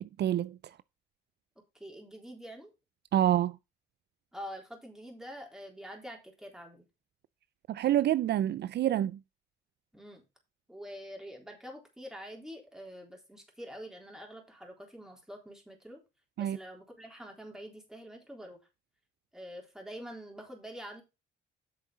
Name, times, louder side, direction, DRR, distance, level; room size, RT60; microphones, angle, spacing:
voice 1, 0.0-0.8 3.1-3.6 7.7-9.2 16.4-16.6, right 12 dB, 60° right, 0.4 m, -27 dB
voice 2, 1.7-2.7 4.3-6.8 9.9-10.2 10.7-16.0 16.4-18.6 19.3-21.0, equal, 5° right, 3.7 m, -46 dB
8.0 x 6.5 x 5.0 m
cardioid pair, 90°, 20 cm